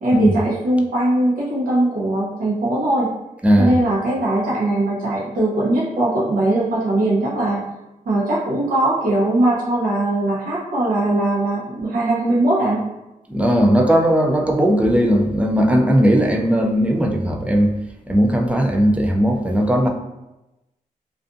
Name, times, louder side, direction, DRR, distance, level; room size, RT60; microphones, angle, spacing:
voice 1, 0.0-3.1 3.6-7.7 8.0-12.9, right 1 dB, 80° right, -6 dB, 0.7 m, -20 dB
voice 2, 3.4-3.8 13.3-17.7 18.1-19.9, equal, 10° right, 1 dB, 0.3 m, -17 dB
2.4 x 2.4 x 2.5 m, 0.98 s
wide cardioid pair, 105°, 14 cm